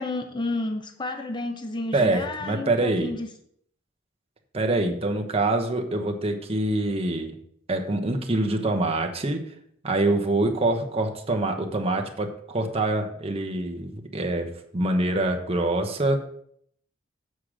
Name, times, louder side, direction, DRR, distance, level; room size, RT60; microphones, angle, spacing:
voice 1, 0.0-3.3, left 2 dB, 25° left, 5 dB, 0.7 m, -31 dB
voice 2, 1.9-3.2 4.5-7.3 7.7-9.4 9.8-16.3, right 2 dB, 30° right, 4 dB, 1.1 m, -25 dB
8.0 x 5.0 x 6.2 m, 0.67 s
head